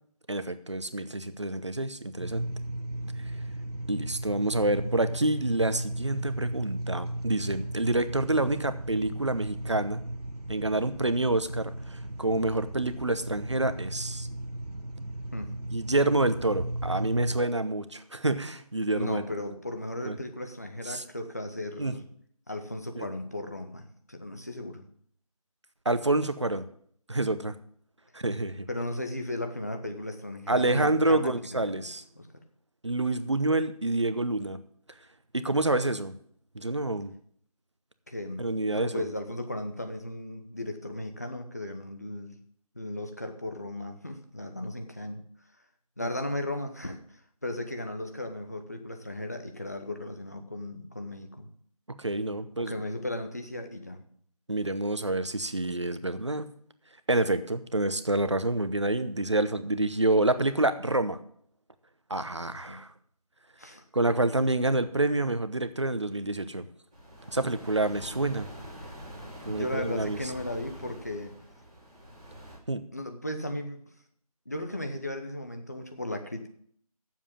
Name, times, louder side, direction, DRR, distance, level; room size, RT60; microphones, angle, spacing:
voice 1, 0.3-2.5 3.9-10.0 10.5-14.3 15.7-19.2 20.0-20.1 20.9-21.0 21.8-21.9 23.0-23.1 25.8-26.6 27.1-27.5 28.1-28.7 30.5-32.0 32.8-34.6 35.3-36.1 36.5-37.1 38.4-39.0 46.0-46.1 51.9-52.9 54.5-56.5 57.1-61.2 62.1-62.9 63.9-66.7 67.3-68.5 69.5-70.2 72.7-72.8, right 2 dB, 50° right, 11 dB, 0.9 m, -28 dB
sound 1, 2.2-17.4, right 1 dB, 90° right, 1.2 m, -36 dB
voice 2, 18.9-22.0 22.5-24.9 28.7-31.9 32.2-32.3 38.1-42.4 42.7-45.2 46.0-47.0 47.4-51.5 52.6-54.0 62.7-62.8 63.6-63.8 69.5-71.3 72.9-73.8 74.5-76.5, left 1 dB, 25° left, 6 dB, 0.9 m, -36 dB
sound 2, 66.9-72.6, equal, 10° right, 1.4 m, -45 dB
8.3 x 7.4 x 8.7 m, 0.63 s
figure-of-eight pair, 170°, 19 cm